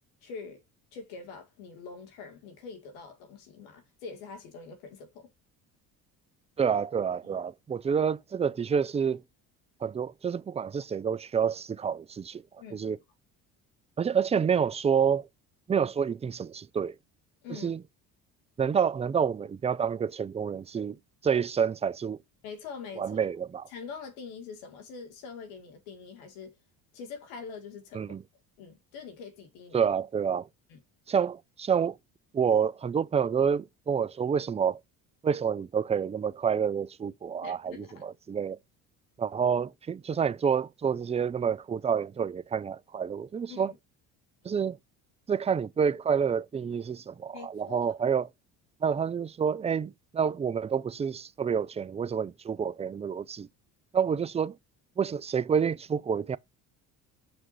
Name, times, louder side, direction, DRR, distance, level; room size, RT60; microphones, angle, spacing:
voice 1, 0.2-0.6 0.9-5.3 7.2-7.4 12.6-12.9 17.4-17.7 22.4-23.2 23.7-26.5 26.9-28.1 28.6-29.9 30.7-30.8 37.4-38.1 43.5-43.8 47.3-47.9, left 5 dB, 85° left, 2.3 m, -44 dB
voice 2, 6.6-9.2 9.8-12.4 12.7-13.0 14.0-15.3 15.7-16.9 17.5-17.8 18.6-21.0 21.2-22.2 23.0-23.7 27.9-28.2 29.7-30.5 31.1-32.0 32.3-34.8 35.2-38.6 39.2-43.7 44.4-44.8 45.3-48.3 48.8-53.5 53.9-54.6 55.0-56.4, right 7 dB, 15° right, 0.4 m, -28 dB
6.1 x 6.0 x 2.7 m
supercardioid pair, 70°, 42 cm